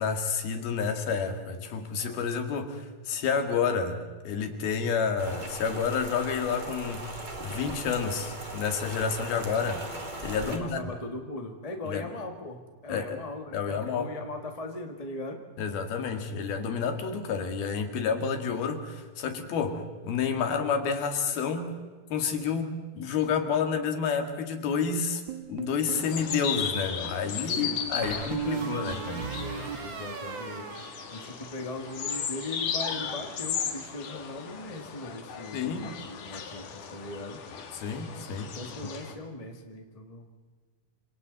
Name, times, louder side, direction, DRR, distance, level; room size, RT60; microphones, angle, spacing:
voice 1, 0.0-7.2 7.4-9.9 10.2-10.8 11.8-12.0 12.9-13.2 13.5-14.1 15.6-21.8 22.1-25.2 25.5-29.3 35.5-35.9 37.7-38.6 38.8-38.9, left 6 dB, 75° left, 5 dB, 4.0 m, -29 dB
Rain, 5.2-10.6, right 1 dB, 15° right, 1.6 m, -39 dB
voice 2, 10.4-15.4 27.5-29.0 29.4-30.8 31.1-37.4 38.5-40.3, left 2 dB, 20° left, 3 dB, 0.9 m, -39 dB
sound 1, 25.3-26.1 28.0-31.5 31.8-32.3, right 7 dB, 55° right, 1.3 m, -37 dB
sound 2, 25.9-39.1, left 7 dB, 60° left, 3.1 m, -36 dB
28.5 x 26.5 x 4.1 m, 1.4 s
omnidirectional pair, 4.4 m